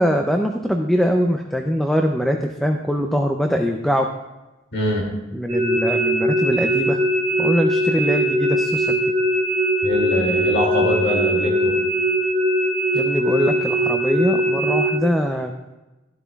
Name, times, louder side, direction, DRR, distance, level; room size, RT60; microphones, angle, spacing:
voice 1, 0.0-4.1 5.3-7.0 7.4-9.0 12.9-15.5, equal, ahead, 4 dB, 0.4 m, -22 dB
voice 2, 4.7-5.0 9.8-11.8, left 1 dB, 60° left, -2 dB, 2.4 m, -23 dB
sound 1, 5.5-14.9, equal, 25° right, 2.9 m, -21 dB
12.5 x 12.0 x 2.3 m, 1.1 s
head